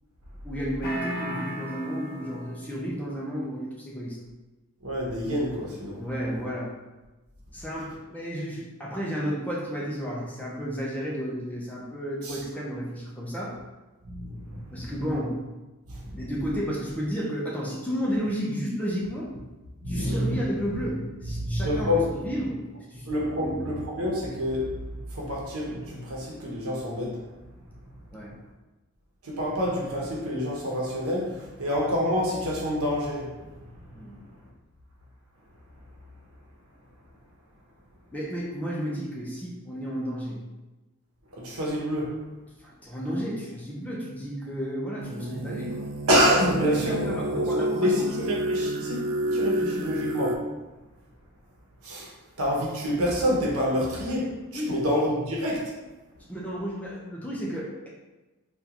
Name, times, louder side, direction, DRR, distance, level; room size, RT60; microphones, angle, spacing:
voice 1, 0.4-4.2 6.0-6.7 7.5-13.6 14.7-15.4 16.1-19.3 19.9-22.6 22.9-23.1 23.4-23.8 28.1-28.4 33.9-34.1 38.1-40.4 42.6-45.9 46.4-48.1 54.5-54.9 56.3-57.9, equal, 5° left, -4 dB, 0.5 m, -32 dB
sound 1, 0.8-2.8, equal, 45° left, 0.7 m, -35 dB
voice 2, 4.8-6.0 12.2-12.4 14.0-14.9 15.9-16.2 19.8-20.8 21.3-22.0 23.1-24.8 25.1-27.2 29.2-33.3 41.3-42.2 46.1-47.0 47.3-49.0 49.3-50.5 51.8-52.1 52.4-55.7, equal, 85° right, -3 dB, 0.9 m, -27 dB
sound 2, 45.0-50.4, right 1 dB, 60° right, 0.4 m, -30 dB
3.6 x 2.4 x 2.8 m, 1.1 s
head